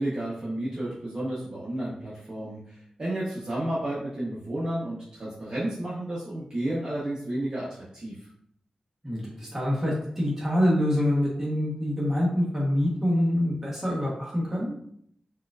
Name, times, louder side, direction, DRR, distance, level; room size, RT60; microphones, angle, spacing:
voice 1, 0.0-8.2, right 1 dB, 35° right, -8 dB, 0.8 m, -32 dB
voice 2, 9.0-14.7, left 1 dB, 15° right, -6 dB, 1.0 m, -25 dB
4.3 x 2.4 x 2.4 m, 0.68 s
wide cardioid pair, 135°, 2 cm